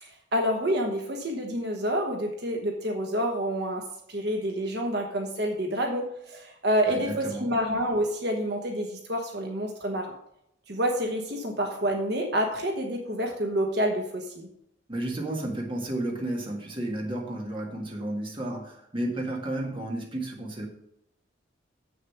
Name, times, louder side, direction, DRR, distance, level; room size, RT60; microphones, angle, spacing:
voice 1, 0.0-3.8 4.1-10.1 10.7-14.5, equal, 60° right, 2 dB, 1.2 m, -28 dB
voice 2, 6.9-7.5 14.9-20.7, right 1 dB, 25° right, -1 dB, 1.7 m, -32 dB
7.5 x 6.6 x 5.8 m, 0.76 s
head